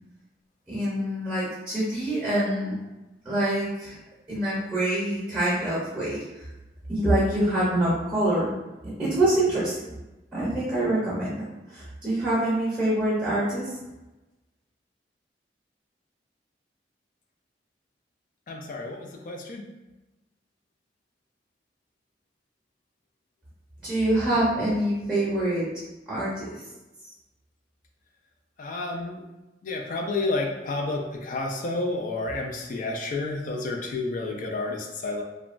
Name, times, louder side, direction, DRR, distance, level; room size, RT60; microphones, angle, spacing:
voice 1, 0.7-2.8 3.2-4.0 4.3-6.4 6.9-8.6 9.0-9.8 10.3-11.4 11.7-13.7 23.8-25.7 26.1-26.6, right 1 dB, 5° right, -7 dB, 0.7 m, -25 dB
voice 2, 18.5-19.6 24.3-24.4 28.6-29.2 29.6-35.2, left 2 dB, 50° left, 2 dB, 0.3 m, -30 dB
2.9 x 2.2 x 2.5 m, 1.0 s
head